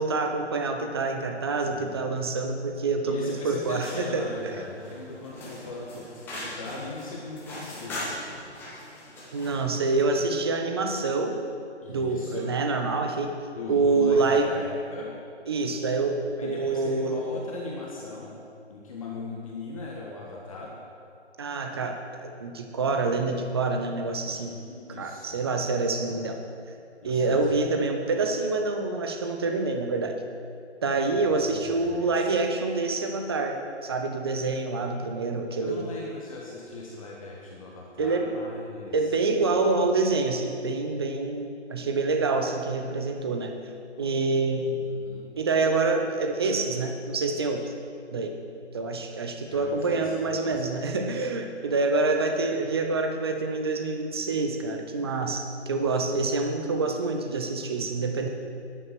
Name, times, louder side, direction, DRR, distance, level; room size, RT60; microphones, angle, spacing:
voice 1, 0.0-4.3 9.3-11.4 11.9-13.4 13.7-14.5 15.5-17.2 21.4-24.6 24.9-26.4 27.0-30.1 30.8-35.9 38.0-38.3 38.9-43.5 44.0-44.8 45.4-47.7 48.1-48.3 48.7-58.3, right 3 dB, 20° right, 4 dB, 0.7 m, -26 dB
voice 2, 1.6-2.1 3.0-6.1 6.4-8.0 11.8-12.5 13.6-15.1 16.4-18.3 18.7-20.7 24.4-25.4 27.0-27.6 31.1-32.3 35.6-39.1 44.8-45.2 49.5-50.9, left 3 dB, 30° left, -3 dB, 1.4 m, -39 dB
sound 1, 3.6-9.7, left 1 dB, 5° left, 1.2 m, -40 dB
10.0 x 9.5 x 6.0 m, 2.4 s
figure-of-eight pair, 150°, 35 cm